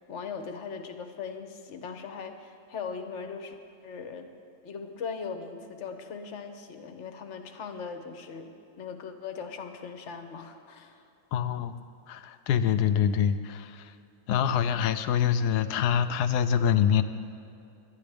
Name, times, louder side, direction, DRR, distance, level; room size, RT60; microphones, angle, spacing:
voice 1, 0.0-3.5 3.8-4.3 4.6-11.0, left 5 dB, 50° left, 7 dB, 1.1 m, -39 dB
voice 2, 11.3-13.9 14.3-17.0, left 8 dB, 85° left, 11 dB, 1.2 m, -25 dB
21.5 x 11.0 x 3.5 m, 2.6 s
omnidirectional pair, 1.7 m